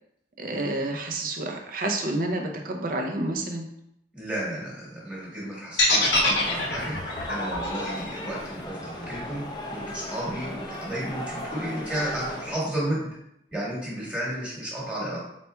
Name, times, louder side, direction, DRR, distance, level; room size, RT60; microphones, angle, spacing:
voice 1, 0.4-3.7, right 2 dB, 50° right, 2 dB, 0.6 m, -29 dB
voice 2, 4.1-9.4 9.7-13.1 13.5-15.2, right 1 dB, 5° right, -6 dB, 1.4 m, -33 dB
sound 1, 5.8-9.8, left 2 dB, 80° left, 0.7 m, -25 dB
sound 2, 6.1-12.6, left 1 dB, 25° left, 0.5 m, -36 dB
4.4 x 4.0 x 2.3 m, 0.79 s
head